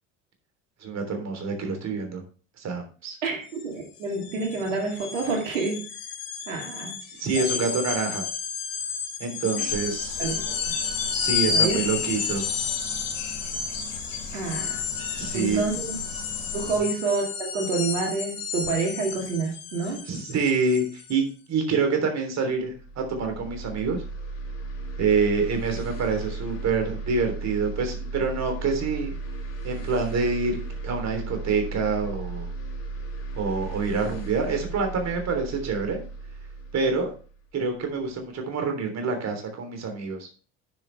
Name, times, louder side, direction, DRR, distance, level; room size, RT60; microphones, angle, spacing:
voice 1, 0.8-2.2 2.6-3.2 7.2-8.3 9.2-10.2 11.2-12.4 15.2-15.6 20.1-21.2 21.5-24.0 25.0-29.2 29.6-30.6 30.8-32.5 33.3-36.0 36.7-37.1 37.5-40.3, right 4 dB, 45° right, 5 dB, 3.3 m, -26 dB
voice 2, 3.2-5.9 6.5-7.0 7.4-7.6 9.6-9.7 10.2-10.4 11.5-11.8 14.3-14.8 15.3-16.0 16.5-20.0, right 3 dB, 80° right, 0 dB, 2.5 m, -28 dB
sound 1, 3.5-3.6 3.9-21.2, left 7 dB, 60° left, 3.9 m, -33 dB
sound 2, 9.7-16.8, left 5 dB, 85° left, 2.9 m, -31 dB
sound 3, 22.6-38.1, right 3 dB, 40° left, 3.8 m, -35 dB
9.8 x 7.1 x 3.4 m, 0.38 s
hypercardioid pair, 65°, 38 cm